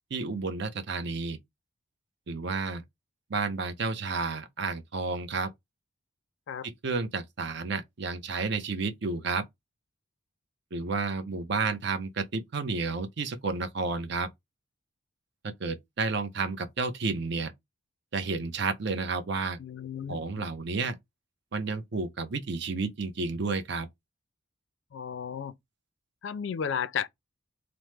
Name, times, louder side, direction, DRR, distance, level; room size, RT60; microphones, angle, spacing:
voice 1, 0.1-1.4 2.3-2.8 3.3-5.5 6.6-9.4 10.7-14.3 15.4-17.5 18.1-19.6 20.1-20.9 21.5-23.9, right 4 dB, 55° right, 0.5 m, -31 dB
voice 2, 19.6-20.4 24.9-25.5 26.2-27.1, left 7 dB, 60° left, 0.3 m, -34 dB
2.9 x 2.0 x 3.2 m
head